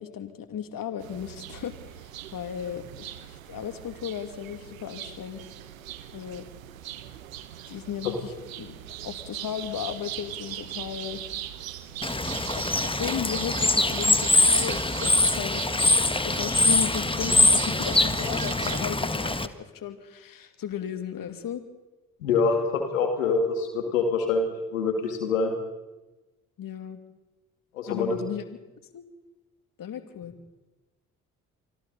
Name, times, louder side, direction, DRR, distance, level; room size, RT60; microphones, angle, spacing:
voice 1, 0.0-5.5 6.1-6.5 7.7-8.3 8.6-8.7 9.0-11.2 12.5-21.6 26.6-27.0 27.9-28.5 28.9-29.0 29.8-30.3, left 9 dB, 55° left, 7 dB, 2.9 m, -35 dB
sound 1, 1.0-18.9, right 12 dB, 90° right, 1.1 m, -39 dB
Bird / Water, 12.0-19.5, left 2 dB, 15° left, 1.6 m, -23 dB
voice 2, 22.2-25.5 27.7-28.2, left 4 dB, 85° left, 4 dB, 2.7 m, -25 dB
27.5 x 25.0 x 4.3 m, 1.1 s
hypercardioid pair, 40°, 39 cm